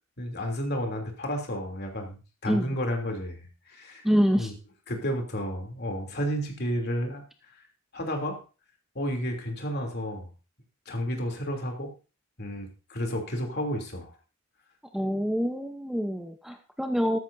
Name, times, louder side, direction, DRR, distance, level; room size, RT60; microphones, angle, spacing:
voice 1, 0.2-4.0 4.4-4.5 4.9-7.2 7.9-8.4 8.9-10.3 10.9-11.9 12.4-14.1, equal, 50° left, 3 dB, 3.0 m, -31 dB
voice 2, 2.5-2.8 4.0-4.5 14.9-17.2, equal, ahead, 5 dB, 0.8 m, -26 dB
13.5 x 13.5 x 2.7 m, 0.33 s
head